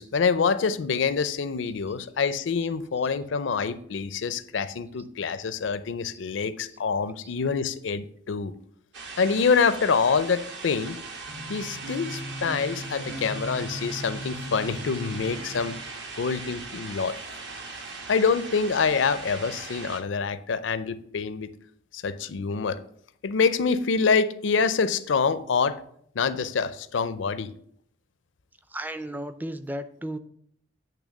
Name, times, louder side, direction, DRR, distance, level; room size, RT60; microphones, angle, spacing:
voice 1, 0.0-8.5 9.2-11.0 11.5-15.8 16.2-17.2 18.1-21.5 21.9-22.8 23.2-25.8 26.1-27.5, left 5 dB, 75° left, 13 dB, 0.5 m, -26 dB
sound 1, 8.9-20.0, right 3 dB, 65° right, 1.2 m, -39 dB
sound 2, 11.2-15.8, equal, 80° right, 1.7 m, -38 dB
voice 2, 28.7-30.2, right 1 dB, 10° right, 11 dB, 0.4 m, -34 dB
8.6 x 3.2 x 6.3 m, 0.66 s
head